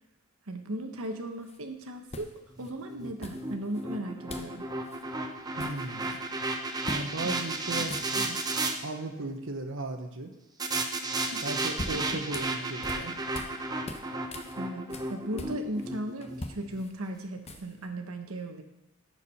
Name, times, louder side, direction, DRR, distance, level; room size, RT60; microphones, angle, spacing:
voice 1, 0.5-2.3 2.6-4.7 7.2-7.4 7.8-7.9 8.2-8.3 11.3-11.5 14.6-14.8 15.1-18.6, right 1 dB, 75° right, 5 dB, 1.2 m, -37 dB
sound 1, 1.4-1.6 2.1-2.7 3.2-3.8 4.3-4.6 4.8-5.0 5.3-6.2 6.8-7.1 7.4-7.5 7.8-8.5 11.3-13.6 13.8-15.9 16.2-17.9, left 2 dB, 30° left, 0.8 m, -42 dB
sound 2, 2.5-8.7 10.6-16.8, right 2 dB, 20° right, 0.7 m, -33 dB
voice 2, 5.6-6.2 6.9-8.4 8.8-10.3 11.4-13.2, right 2 dB, 60° right, 5 dB, 1.1 m, -36 dB
14.0 x 4.8 x 5.7 m, 0.93 s
head